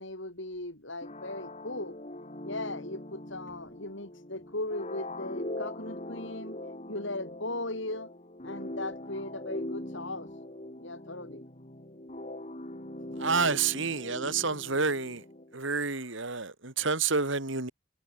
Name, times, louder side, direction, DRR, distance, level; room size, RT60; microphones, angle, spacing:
voice 1, 0.0-2.0 2.4-6.6 6.9-8.1 8.4-10.3 10.8-11.4, left 2 dB, 60° left, 6.5 m, -38 dB
sound 1, 1.0-15.6, left 1 dB, 35° left, 2.8 m, -41 dB
voice 2, 13.2-15.2 15.5-17.7, right 4 dB, 65° right, 2.7 m, -29 dB
head